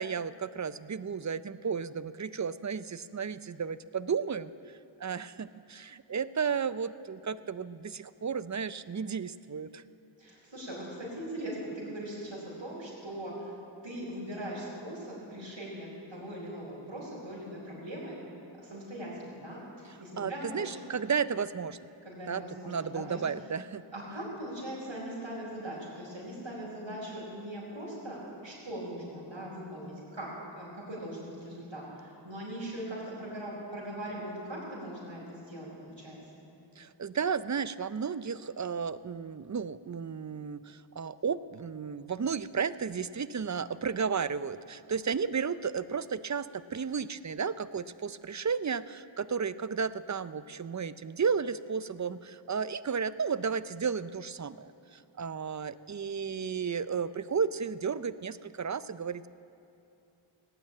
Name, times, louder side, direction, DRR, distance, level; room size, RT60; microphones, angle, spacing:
voice 1, 0.0-4.5 5.0-9.8 20.2-21.8 22.3-23.8 36.8-59.3, right 6 dB, 40° right, 15 dB, 0.5 m, -33 dB
voice 2, 10.2-13.5 13.8-18.1 18.5-20.7 22.0-23.2 23.9-36.2, right 1 dB, 70° right, -7 dB, 4.6 m, -40 dB
18.0 x 8.9 x 8.7 m, 2.8 s
wide cardioid pair, 45°, 47 cm